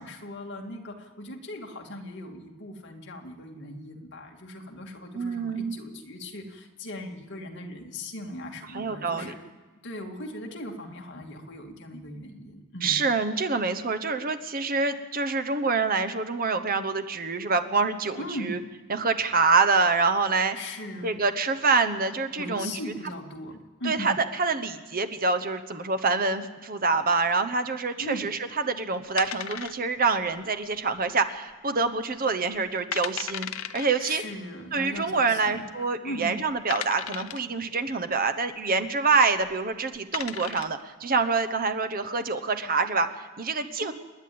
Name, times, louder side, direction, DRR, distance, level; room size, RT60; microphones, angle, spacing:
voice 1, 0.0-9.4 9.8-13.0 18.2-18.6 20.5-21.2 22.4-24.2 28.0-28.3 34.0-35.7 36.0-36.4 43.8-43.9, left 1 dB, 55° left, 1 dB, 2.4 m, -38 dB
voice 2, 5.1-5.8 8.7-9.3 12.8-18.6 18.9-20.6 21.0-22.7 23.8-28.4 28.6-33.5 33.7-34.2 34.7-43.9, right 4 dB, 45° right, 10 dB, 1.1 m, -26 dB
sound 1, 29.2-30.1 30.4-30.5 31.1-31.5 31.9-32.0 32.6-32.7 32.9-33.9 35.0-35.1 35.7-35.8 36.7-37.5 39.4-39.5 39.9-40.8, left 9 dB, 70° left, 0.8 m, -35 dB
28.5 x 10.5 x 8.7 m, 1.2 s
head